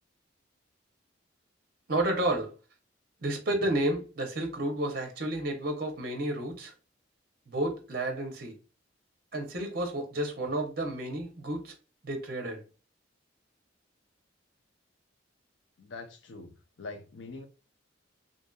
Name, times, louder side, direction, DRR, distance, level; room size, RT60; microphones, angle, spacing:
voice 1, 1.9-2.5 3.2-6.7 7.5-8.5 9.3-11.7 12.0-12.6, right 1 dB, 50° right, 0.6 m, -31 dB
voice 2, 15.8-16.5 16.8-17.5, left 3 dB, 70° left, 0.5 m, -43 dB
2.6 x 2.6 x 2.2 m
head